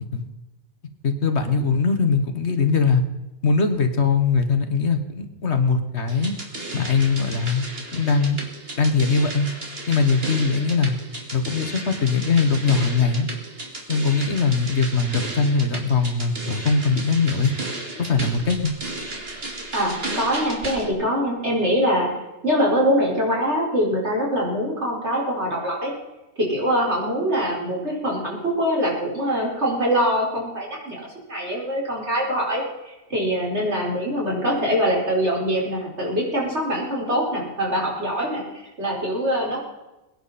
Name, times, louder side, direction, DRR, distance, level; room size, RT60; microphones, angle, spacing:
voice 1, 1.0-3.0 3.4-6.3 6.7-7.7 7.9-8.4 8.8-9.5 9.9-11.0 11.3-13.3 13.9-17.5 18.0-18.7, left 4 dB, 75° left, 7 dB, 1.8 m, -21 dB
sound 1, 6.1-20.9, right 2 dB, 60° right, 2.6 m, -34 dB
voice 2, 19.7-22.1 22.4-25.9 26.4-31.0 31.3-39.6, equal, 80° right, -3 dB, 5.3 m, -23 dB
22.5 x 10.0 x 4.3 m, 1.0 s
omnidirectional pair, 1.1 m